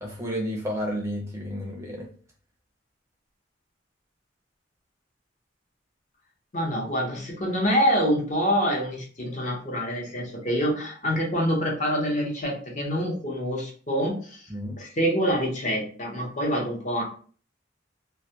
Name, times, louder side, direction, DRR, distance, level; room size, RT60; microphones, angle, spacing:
voice 1, 0.0-2.1 14.5-14.8, equal, 15° right, -1 dB, 0.5 m, -31 dB
voice 2, 6.5-14.5 14.8-17.0, equal, 40° left, -2 dB, 0.7 m, -26 dB
2.3 x 2.1 x 2.7 m, 0.43 s
head